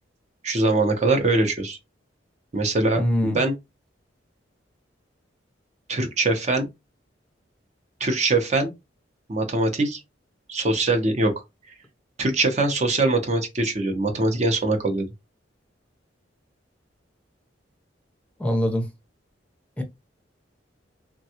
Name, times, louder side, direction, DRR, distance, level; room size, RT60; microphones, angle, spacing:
voice 1, 0.4-1.8 2.5-3.5 5.9-6.7 8.0-8.7 9.3-10.0 10.5-11.3 12.2-15.1, right 2 dB, 35° right, 0.6 m, -22 dB
voice 2, 3.0-3.4 18.4-18.9 19.8-19.9, equal, 5° left, 0.6 m, -23 dB
3.4 x 2.2 x 2.7 m
head